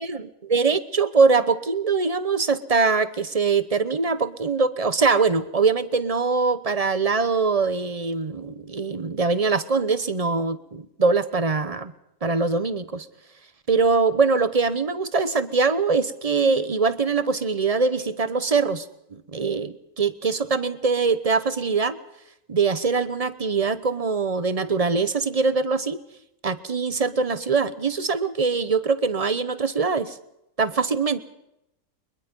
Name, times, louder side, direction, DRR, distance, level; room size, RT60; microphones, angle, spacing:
voice 1, 0.0-11.9 12.2-13.1 13.7-18.9 19.1-22.0 22.5-26.0 26.4-30.2 30.6-31.2, right 4 dB, 30° right, 14 dB, 0.7 m, -23 dB
22.5 x 22.0 x 5.4 m, 0.85 s
omnidirectional pair, 1.8 m